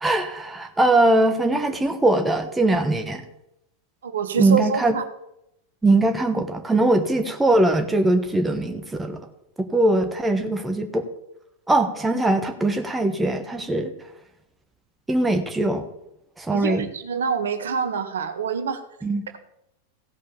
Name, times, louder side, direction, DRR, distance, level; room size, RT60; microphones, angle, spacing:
voice 1, 0.0-3.2 4.4-4.9 5.8-9.2 9.6-11.1 11.7-13.9 15.1-15.8 16.4-16.9 19.0-19.2, right 2 dB, 10° right, 5 dB, 1.3 m, -21 dB
voice 2, 4.0-5.0 16.5-18.8, right 6 dB, 65° right, 9 dB, 0.9 m, -26 dB
15.5 x 5.3 x 6.9 m, 0.83 s
figure-of-eight pair, 90°, 0 cm